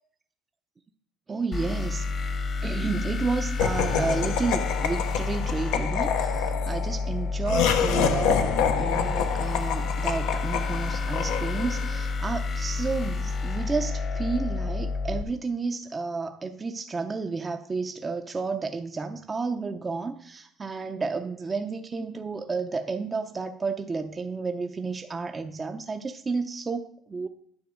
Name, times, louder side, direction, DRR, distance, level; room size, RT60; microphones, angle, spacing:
voice 1, 1.3-2.1 2.6-27.3, right 4 dB, 25° right, 6 dB, 0.5 m, -31 dB
sound 1, 1.5-15.2, left 4 dB, 45° left, 1.1 m, -30 dB
Laughter, 3.6-12.0, left 7 dB, 85° left, 0.7 m, -27 dB
9.7 x 3.5 x 6.3 m, 0.67 s
supercardioid pair, 95°, 0 cm